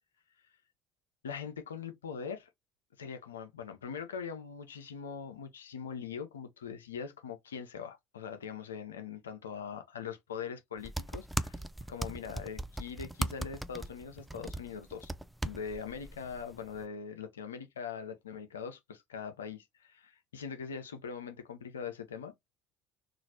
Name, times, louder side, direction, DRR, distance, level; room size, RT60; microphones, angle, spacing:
voice 1, 1.2-2.5 3.0-11.6 11.9-15.1 15.4-22.3, left 6 dB, 85° left, 0.5 m, -42 dB
sound 1, 10.8-16.8, right 1 dB, 5° right, 0.3 m, -39 dB
3.0 x 2.4 x 2.7 m
hypercardioid pair, 65°, 0 cm